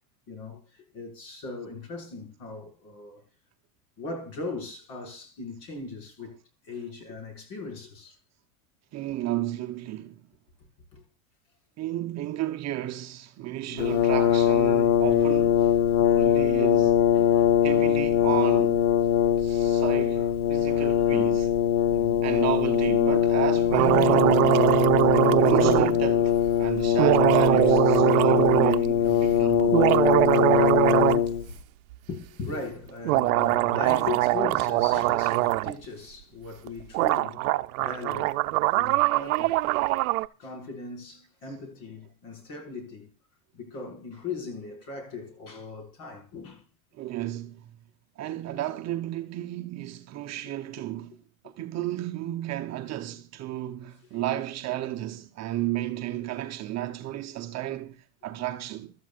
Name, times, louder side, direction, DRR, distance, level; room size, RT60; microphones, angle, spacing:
voice 1, 0.3-3.2 4.0-6.4 6.6-8.2 10.9-11.0 13.7-13.9 17.1-18.1 20.7-20.8 21.9-22.3 23.9-24.0 31.3-31.4 32.1-38.4 38.7-39.6 40.2-43.1 43.5-46.6 54.1-54.2 55.6-55.7, left 4 dB, 50° left, 5.7 m, -39 dB
voice 2, 8.9-10.2 11.8-17.1 17.6-18.9 19.4-21.5 22.2-24.6 25.4-29.9 39.8-40.0 47.0-47.6 48.2-51.2 51.6-58.9, right 14 dB, 40° right, 0.9 m, -33 dB
Brass instrument, 13.8-31.6, left 10 dB, 90° left, 1.2 m, -22 dB
sound 1, 23.7-25.9 27.0-28.8 29.6-31.3 31.5-31.6 33.1-35.7 36.7-36.8 36.9-40.3, right 20 dB, 70° right, 0.7 m, -22 dB
24.5 x 12.5 x 2.5 m
supercardioid pair, 115°, 43 cm